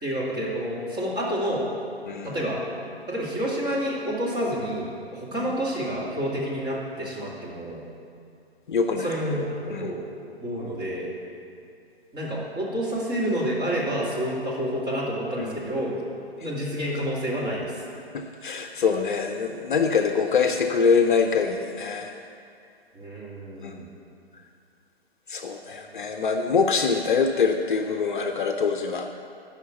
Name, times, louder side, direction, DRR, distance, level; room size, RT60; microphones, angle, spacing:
voice 1, 0.0-1.7 2.2-2.6 3.1-7.8 8.9-9.4 9.7-10.0 10.4-11.1 12.1-16.0 16.4-17.8 22.9-23.9 25.7-26.0, equal, 15° right, -6 dB, 2.4 m, -29 dB
voice 2, 8.7-9.1 9.7-9.9 15.4-15.7 18.1-22.1 23.6-23.8 25.3-29.1, left 5 dB, 50° left, 5 dB, 0.7 m, -24 dB
13.0 x 5.7 x 7.0 m, 2.4 s
figure-of-eight pair, 130°, 32 cm